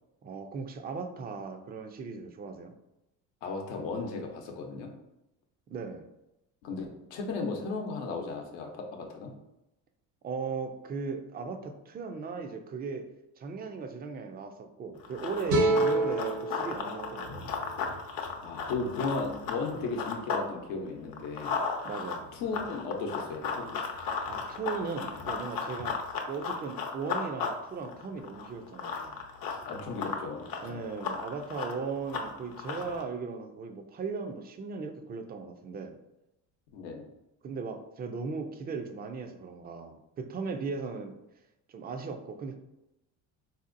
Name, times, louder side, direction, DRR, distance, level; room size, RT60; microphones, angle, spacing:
voice 1, 0.2-2.7 5.7-6.0 10.2-13.1 13.4-17.5 21.8-22.3 24.3-26.0 26.3-29.2 30.6-36.0 37.4-41.1 41.7-42.6, right 5 dB, 25° right, 6 dB, 0.4 m, -37 dB
voice 2, 3.4-4.9 6.6-9.3 18.4-21.5 22.3-23.7 29.6-30.8 36.7-37.0, left 3 dB, 85° left, 2 dB, 0.8 m, -35 dB
Run, 15.0-20.5 20.8-33.0, left 5 dB, 55° left, 0.7 m, -36 dB
sound 1, 15.5-18.7, right 2 dB, 80° right, 1.1 m, -29 dB
3.6 x 2.7 x 2.5 m, 0.90 s
supercardioid pair, 90°, 41 cm